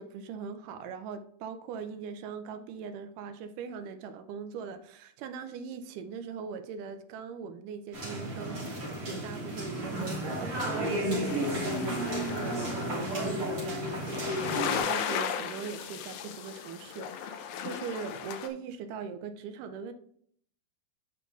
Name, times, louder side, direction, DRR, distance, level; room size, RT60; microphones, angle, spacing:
voice 1, 0.0-19.9, right 6 dB, 80° right, 9 dB, 2.1 m, -41 dB
sound 1, 7.9-14.8, equal, 35° right, 3.9 m, -32 dB
sound 2, 11.3-18.5, left 8 dB, 80° left, 1.7 m, -36 dB
10.5 x 5.4 x 2.4 m, 0.62 s
omnidirectional pair, 3.9 m